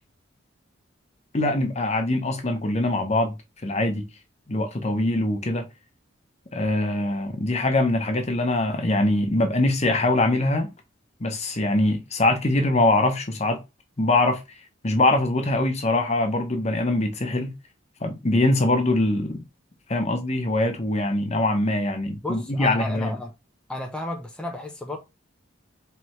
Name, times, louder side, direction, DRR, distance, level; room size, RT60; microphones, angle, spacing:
voice 1, 1.3-3.3 3.6-4.1 4.5-5.7 6.5-10.7 11.2-13.6 14.0-14.4 14.8-17.5 18.0-19.4 19.9-23.1, left 2 dB, 35° left, 0.8 m, -23 dB
voice 2, 22.2-23.3 23.7-25.0, left 1 dB, 5° left, 0.7 m, -33 dB
4.4 x 3.3 x 3.1 m
head